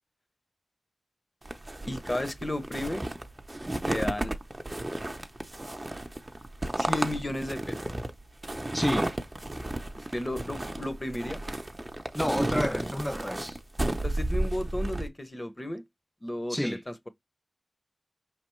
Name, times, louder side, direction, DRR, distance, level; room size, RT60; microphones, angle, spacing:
sound 1, 1.5-15.1, right 1 dB, 25° right, 0.7 m, -33 dB
voice 1, 1.9-3.0 3.9-4.3 6.8-7.9 10.0-11.4 14.0-15.8 16.2-17.1, left 1 dB, 30° left, 0.8 m, -33 dB
voice 2, 8.7-9.1 12.1-13.6 16.5-16.8, equal, 5° left, 0.3 m, -29 dB
4.9 x 3.3 x 3.1 m
wide cardioid pair, 60°, 0 cm